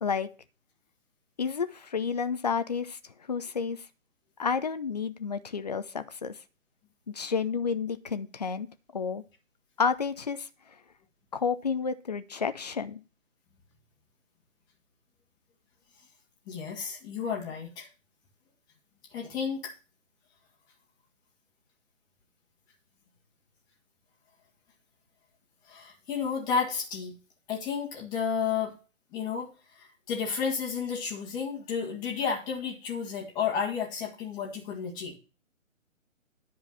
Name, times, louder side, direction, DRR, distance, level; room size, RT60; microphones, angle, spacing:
voice 1, 1.4-3.0 3.3-3.8 4.4-6.4 7.1-8.7 8.9-9.2 9.8-10.5 11.3-13.0, left 6 dB, 30° left, 11 dB, 0.7 m, -30 dB
voice 2, 16.5-17.9 19.1-19.7 25.7-27.1 27.5-28.7 29.1-29.5 29.8-35.2, left 6 dB, 10° left, -1 dB, 1.6 m, -32 dB
10.5 x 4.7 x 7.3 m, 0.34 s
figure-of-eight pair, 150°, 40 cm